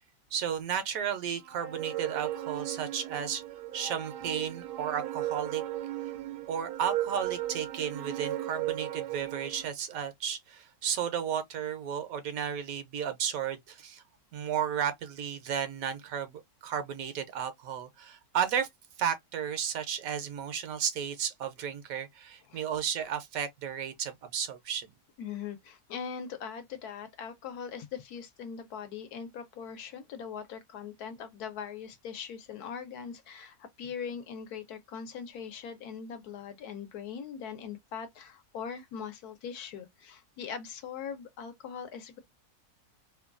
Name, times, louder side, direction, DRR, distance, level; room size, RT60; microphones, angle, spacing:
voice 1, 0.3-3.4 3.7-5.6 6.5-14.0 14.3-18.7 19.0-24.9, right 8 dB, 70° right, 1.0 m, -33 dB
sound 1, 1.5-9.7, right 13 dB, 90° right, 1.1 m, -36 dB
voice 2, 25.2-42.2, left 7 dB, 80° left, 1.2 m, -41 dB
3.0 x 2.2 x 2.4 m
omnidirectional pair, 1.6 m